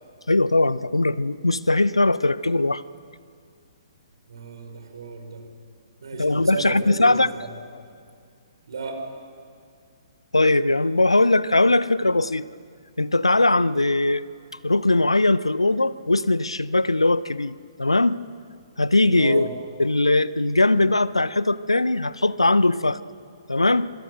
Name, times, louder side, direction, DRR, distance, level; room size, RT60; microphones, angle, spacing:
voice 1, 0.3-2.8 6.2-7.3 10.3-12.5 13.0-14.3 14.6-18.2 18.8-19.5 19.8-23.0 23.5-23.9, left 2 dB, 80° left, 18 dB, 0.7 m, -20 dB
voice 2, 4.3-5.4 6.0-7.1 7.4-7.5 8.7-9.0 19.1-19.5, right 4 dB, 60° right, 4 dB, 5.0 m, -33 dB
25.5 x 24.5 x 6.6 m, 2.2 s
figure-of-eight pair, 125°, 3 cm